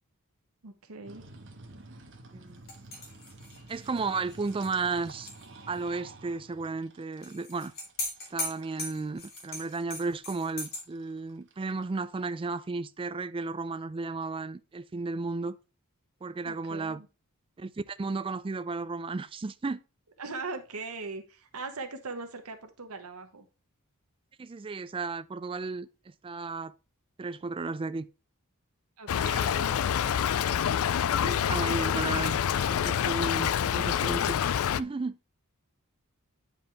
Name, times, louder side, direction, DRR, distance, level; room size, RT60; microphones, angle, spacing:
voice 1, 0.6-1.2 16.4-17.1 20.2-23.5 29.0-29.8, right 3 dB, 90° right, 1.2 m, -40 dB
sound 1, 1.1-12.6, right 2 dB, 55° right, 1.3 m, -51 dB
sound 2, 2.7-5.5 5.7-5.8 7.2-10.8, left 2 dB, 45° left, 3.3 m, -39 dB
voice 2, 3.7-5.3 5.7-7.7 8.3-15.6 16.2-17.0 17.6-19.8 24.4-25.9 26.2-26.7 27.2-28.1 31.2-34.4 34.8-35.2, right 3 dB, 25° right, 0.4 m, -34 dB
Stream / Trickle dribble, 29.1-34.8, left 9 dB, 70° left, 0.4 m, -27 dB
9.2 x 5.1 x 3.4 m
head